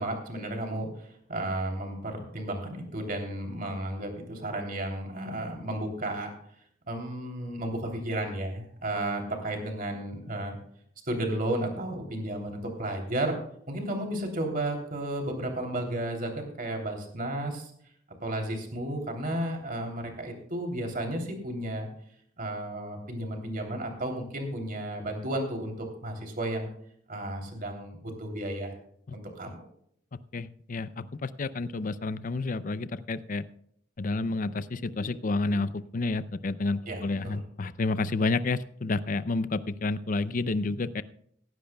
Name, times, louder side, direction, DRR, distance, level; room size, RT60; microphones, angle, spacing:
voice 1, 0.0-6.3 6.9-10.6 11.1-13.4 13.7-17.7 18.2-21.9 22.4-25.7 26.0-26.7 27.1-28.7 29.1-29.7 36.9-37.4, right 1 dB, 45° right, 2 dB, 3.1 m, -33 dB
voice 2, 30.3-33.4 34.0-41.0, left 3 dB, 45° left, 14 dB, 0.5 m, -30 dB
17.0 x 15.5 x 2.3 m, 0.68 s
head